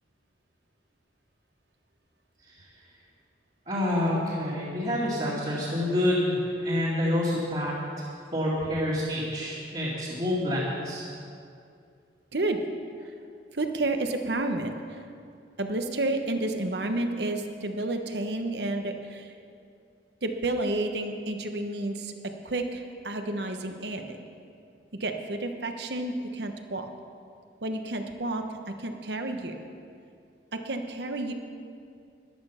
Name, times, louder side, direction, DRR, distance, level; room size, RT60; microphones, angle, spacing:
voice 1, 3.7-8.0 8.3-11.0, left 1 dB, 35° right, -8 dB, 2.3 m, -28 dB
voice 2, 13.5-14.7 15.6-19.3 20.2-22.1 22.4-24.2 25.0-26.8 27.6-28.4 28.8-29.5 30.5-31.3, right 2 dB, 65° right, 6 dB, 1.1 m, -30 dB
14.0 x 11.5 x 5.7 m, 2.4 s
head